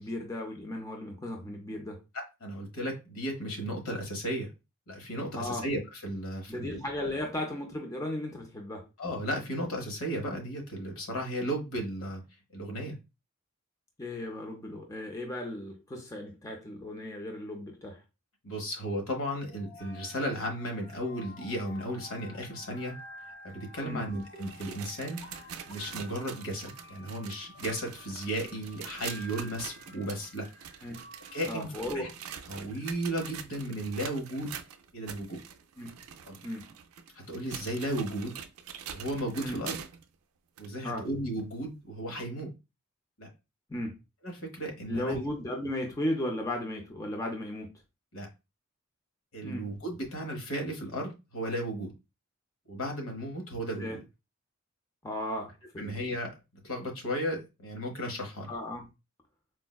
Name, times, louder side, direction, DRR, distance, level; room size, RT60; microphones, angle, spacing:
voice 1, 0.0-2.0 5.3-5.7 6.5-8.9 14.0-18.0 23.8-24.0 30.8-31.0 31.5-32.1 35.8-35.9 36.4-36.7 39.4-39.6 40.8-41.1 43.7-44.0 44.9-47.7 49.4-49.7 53.8-54.0 55.0-55.9 58.5-58.9, left 1 dB, 15° left, 0.5 m, -35 dB
voice 2, 2.1-4.5 4.9-6.8 9.0-12.2 12.5-13.0 18.4-22.9 23.4-25.2 25.7-30.5 31.3-32.1 32.5-34.5 34.9-35.4 36.3-36.4 37.1-38.3 38.9-39.7 40.6-42.5 43.2-43.3 44.2-45.2 48.1-48.3 49.3-51.9 52.7-54.0 55.8-56.3 56.6-58.5, equal, 85° left, 1.1 m, -35 dB
sound 1, 19.5-30.4, left 3 dB, 65° left, 1.0 m, -54 dB
sound 2, 19.8-31.6, equal, 40° left, 1.0 m, -54 dB
sound 3, 24.2-40.1 40.6-40.7 41.4-41.5 42.4-42.5, right 8 dB, 90° right, 0.4 m, -44 dB
4.4 x 2.1 x 2.2 m
head